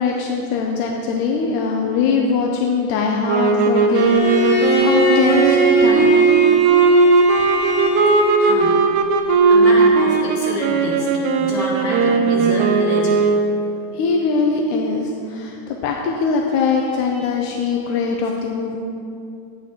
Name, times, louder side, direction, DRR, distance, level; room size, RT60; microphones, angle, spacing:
voice 1, 0.0-6.3 7.4-7.6 8.7-8.8 13.9-18.8, left 5 dB, 80° left, 1 dB, 2.0 m, -22 dB
sound 1, 3.3-13.6, right 4 dB, 75° right, 2.0 m, -17 dB
Bowed string instrument, 3.9-8.8, right 2 dB, 65° left, 1.2 m, -19 dB
voice 2, 8.4-8.8 9.5-13.3 16.8-17.2, equal, 45° left, -6 dB, 2.4 m, -28 dB
12.5 x 8.7 x 3.0 m, 2.6 s
omnidirectional pair, 3.9 m